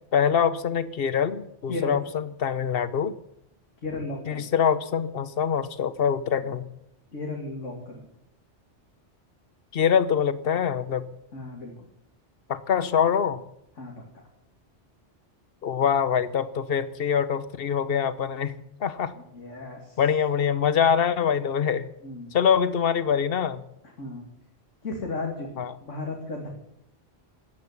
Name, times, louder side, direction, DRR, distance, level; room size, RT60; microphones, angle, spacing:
voice 1, 0.1-3.1 4.3-6.7 9.7-11.1 12.5-13.4 15.6-19.1 20.0-21.9 22.3-23.6 25.6-25.7, left 7 dB, 55° left, 15 dB, 1.1 m, -24 dB
voice 2, 3.8-4.4 6.4-6.5 7.1-8.1 11.3-11.7 13.8-14.0 19.2-20.0 22.0-22.3 24.0-24.3 24.8-26.5, left 2 dB, 80° left, 0 dB, 2.8 m, -35 dB
13.0 x 10.5 x 9.6 m, 0.79 s
omnidirectional pair, 1.3 m